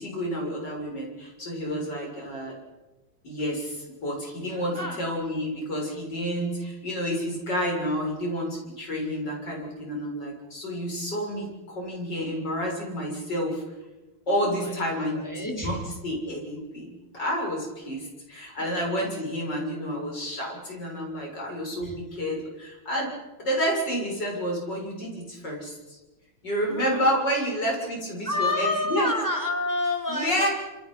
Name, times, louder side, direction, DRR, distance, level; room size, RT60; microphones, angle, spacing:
voice 1, 0.0-2.6 3.2-13.6 14.3-23.1 23.4-26.0 26.4-29.1 30.1-30.5, equal, 55° left, -1 dB, 7.7 m, -30 dB
voice 2, 4.5-5.0 14.3-15.8 18.6-19.0 21.8-22.0 26.7-27.1 28.2-30.5, left 2 dB, 10° left, 0 dB, 4.5 m, -30 dB
27.5 x 27.0 x 5.7 m, 1.1 s
omnidirectional pair, 2.3 m